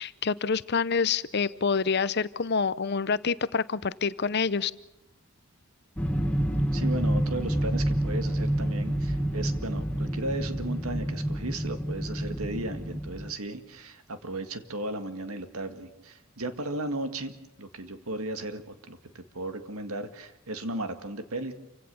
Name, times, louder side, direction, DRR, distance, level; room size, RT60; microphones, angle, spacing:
voice 1, 0.0-4.7, left 5 dB, 50° left, 17 dB, 0.7 m, -27 dB
sound 1, 6.0-13.3, right 1 dB, 5° left, 1.5 m, -28 dB
voice 2, 6.7-17.3 17.6-21.5, right 2 dB, 85° right, 9 dB, 2.0 m, -35 dB
28.0 x 16.5 x 7.0 m, 0.96 s
head